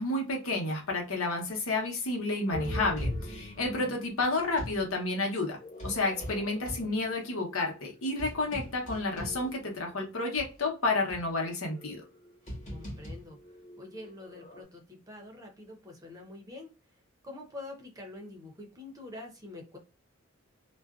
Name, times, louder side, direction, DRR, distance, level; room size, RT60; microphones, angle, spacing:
voice 1, 0.0-5.6 5.8-12.0, left 2 dB, 85° left, 0 dB, 0.9 m, -31 dB
sound 1, 2.5-4.8 5.6-10.0 10.4-10.5 11.1-14.6, left 1 dB, 35° left, 1.2 m, -41 dB
voice 2, 3.5-4.0 12.7-13.4 13.8-16.7 17.2-19.8, left 2 dB, 15° right, 1 dB, 0.7 m, -46 dB
2.5 x 2.1 x 2.4 m, 0.31 s
head